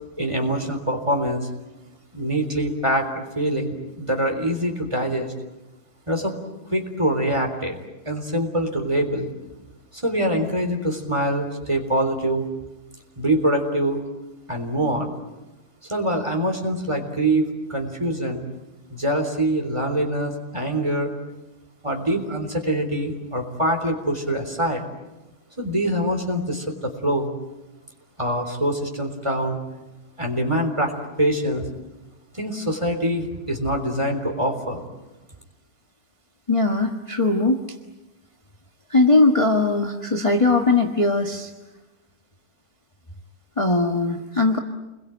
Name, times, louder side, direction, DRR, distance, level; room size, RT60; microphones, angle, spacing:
voice 1, 0.2-1.5 2.1-5.3 6.1-6.3 6.7-7.8 8.1-9.3 10.0-12.5 13.2-14.0 14.5-15.1 15.9-18.4 18.9-21.1 21.8-24.9 25.6-27.3 28.2-29.6 30.2-30.9 31.2-31.6 32.4-34.9, right 1 dB, 20° right, 3 dB, 3.8 m, -24 dB
voice 2, 36.5-37.6 38.9-41.5 43.6-44.6, left 2 dB, 20° left, 3 dB, 1.5 m, -20 dB
28.5 x 22.0 x 9.2 m, 1.0 s
omnidirectional pair, 1.7 m